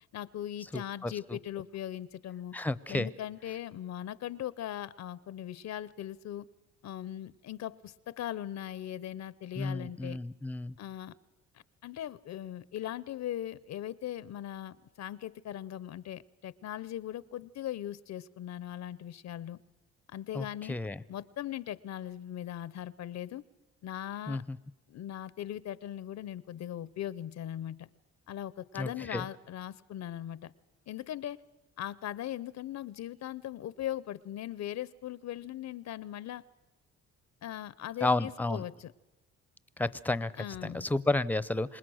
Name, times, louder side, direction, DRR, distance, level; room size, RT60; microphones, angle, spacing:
voice 1, 0.1-2.5 2.9-6.4 6.8-10.2 10.8-11.1 11.8-19.6 20.1-20.8 21.1-23.4 23.8-24.4 24.9-27.9 28.3-30.5 30.9-31.4 31.8-36.4 37.4-38.9 40.4-40.9, left 11 dB, 65° left, 19 dB, 0.7 m, -39 dB
voice 2, 0.7-1.4 2.5-3.1 9.6-10.8 20.3-21.0 24.3-24.6 28.7-29.3 38.0-38.6 39.8-41.8, left 2 dB, 5° left, 17 dB, 0.7 m, -32 dB
27.0 x 20.5 x 6.3 m, 1.0 s
cardioid pair, 90°, 30 cm